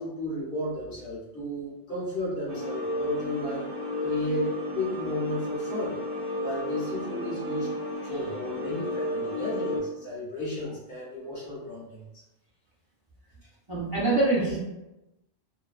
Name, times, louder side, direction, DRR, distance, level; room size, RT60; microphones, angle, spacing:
voice 1, 0.0-3.7 4.0-6.0 6.4-7.7 8.0-12.0, left 1 dB, 60° left, -6 dB, 1.0 m, -33 dB
sound 1, 2.5-9.8, left 1 dB, 65° right, 0.8 m, -32 dB
voice 2, 13.7-14.6, right 2 dB, 25° right, -10 dB, 0.6 m, -24 dB
2.4 x 2.2 x 2.3 m, 0.97 s
omnidirectional pair, 1.1 m